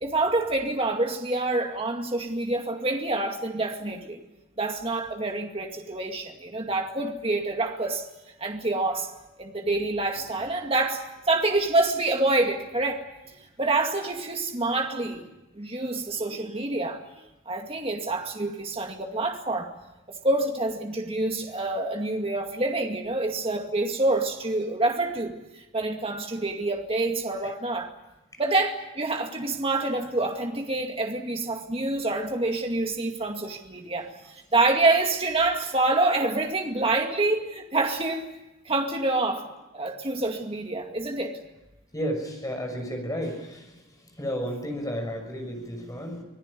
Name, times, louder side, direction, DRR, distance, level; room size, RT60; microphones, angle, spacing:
voice 1, 0.0-4.2 4.6-8.1 8.4-9.1 9.4-13.0 13.6-15.3 15.5-19.7 20.1-27.9 28.4-34.1 34.5-38.3 38.7-39.5 39.7-41.4, right 2 dB, 25° right, 3 dB, 2.2 m, -27 dB
voice 2, 41.9-43.8 44.2-46.2, equal, 15° left, 3 dB, 6.2 m, -32 dB
25.5 x 18.0 x 9.9 m, 0.97 s
head